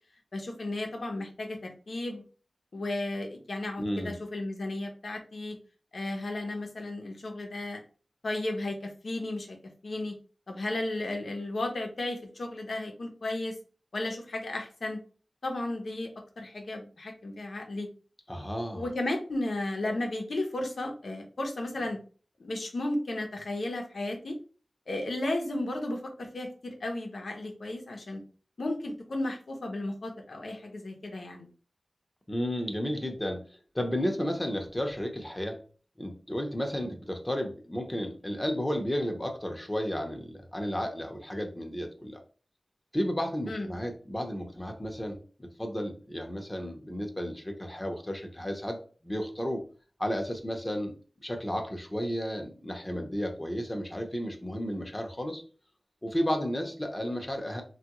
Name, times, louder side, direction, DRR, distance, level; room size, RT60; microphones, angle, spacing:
voice 1, 0.3-2.2 2.7-5.6 5.9-7.8 8.2-9.6 9.8-10.2 10.5-13.5 13.9-15.0 15.4-16.1 16.4-17.9 18.7-22.0 22.4-24.4 24.9-28.2 28.6-31.5 43.5-43.7, left 2 dB, 75° left, 3 dB, 0.8 m, -34 dB
voice 2, 3.8-4.2 18.3-18.9 32.3-33.5 33.7-35.6 36.0-42.2 42.9-48.8 49.0-49.6 50.0-50.9 51.2-55.4 56.0-57.6, equal, 20° left, 3 dB, 0.8 m, -33 dB
3.4 x 2.4 x 2.9 m, 0.39 s
cardioid pair, 45°, 0 cm